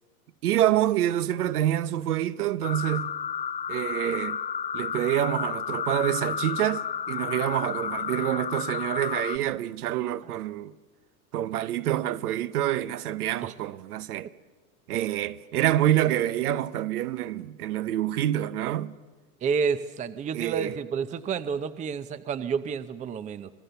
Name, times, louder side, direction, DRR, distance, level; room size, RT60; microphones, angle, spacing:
voice 1, 0.4-3.1 3.7-4.4 4.7-10.7 11.3-14.3 14.9-19.0 20.3-20.8, right 13 dB, 85° right, 1.0 m, -27 dB
sound 1, 2.6-9.4, left 8 dB, 15° left, 0.8 m, -32 dB
voice 2, 19.4-23.5, right 6 dB, 15° right, 0.6 m, -30 dB
26.5 x 19.0 x 6.8 m
supercardioid pair, 125°, 44 cm